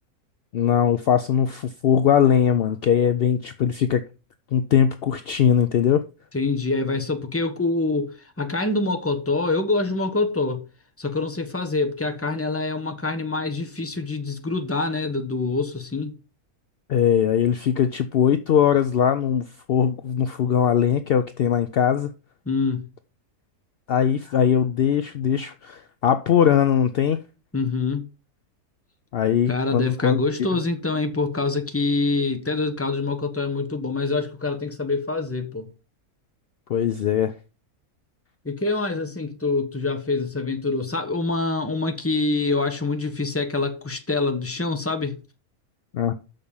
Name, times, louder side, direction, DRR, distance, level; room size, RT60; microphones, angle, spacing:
voice 1, 0.5-4.0 4.5-6.0 16.9-22.1 23.9-27.2 29.1-30.2 36.7-37.3 45.9-46.1, left 8 dB, 65° left, 0.6 m, -20 dB
voice 2, 6.3-10.6 11.0-16.2 22.5-22.8 27.5-28.0 29.5-35.7 38.4-45.2, left 3 dB, 10° left, 1.0 m, -25 dB
6.6 x 5.3 x 7.0 m
omnidirectional pair, 1.6 m